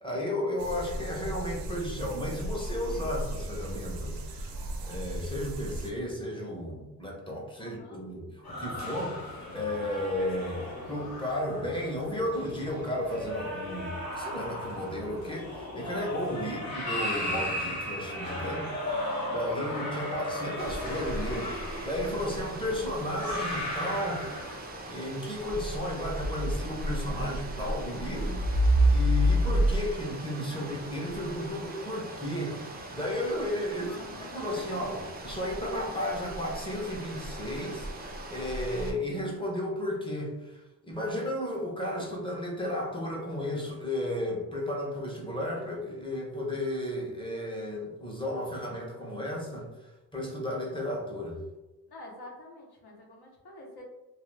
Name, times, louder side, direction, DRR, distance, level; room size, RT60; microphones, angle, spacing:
voice 1, 0.0-4.5 4.8-18.7 19.3-21.6 21.8-24.3 24.9-28.4 28.9-34.0 34.3-49.7 50.1-51.4, left 1 dB, 15° left, -3 dB, 0.6 m, -34 dB
sound 1, 0.6-5.9, right 1 dB, 80° right, 0.5 m, -37 dB
voice 2, 7.6-8.0 16.4-16.7 33.8-34.9 51.9-53.8, left 2 dB, 70° left, -1 dB, 0.8 m, -48 dB
sound 2, 8.4-24.5, left 1 dB, 45° left, 1.0 m, -36 dB
sound 3, 20.6-38.9, equal, 25° right, 0.3 m, -32 dB
2.3 x 2.3 x 3.1 m, 1.0 s
wide cardioid pair, 140°, 40 cm